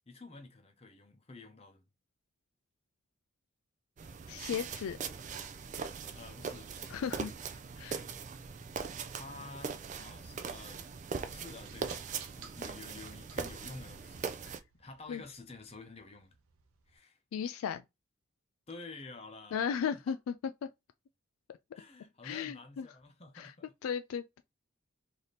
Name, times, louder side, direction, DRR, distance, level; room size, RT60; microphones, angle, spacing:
voice 1, 0.1-1.8 6.1-7.0 9.0-10.8 11.3-11.9 12.4-14.4 14.8-16.4 16.9-17.2 18.7-19.6 20.1-20.2 21.7-23.7, left 3 dB, 30° left, 0.7 m, -50 dB
sound 1, 4.0-14.6, right 5 dB, 35° right, 0.3 m, -41 dB
voice 2, 4.3-5.0 6.9-8.0 14.4-14.6 15.1-15.2 17.3-17.8 19.5-20.3 20.6-20.7 22.2-22.9 23.3-23.5 23.8-24.4, left 7 dB, 80° left, 0.3 m, -36 dB
sound 2, 9.6-17.0, right 7 dB, 85° right, 0.7 m, -58 dB
3.3 x 2.7 x 4.0 m
head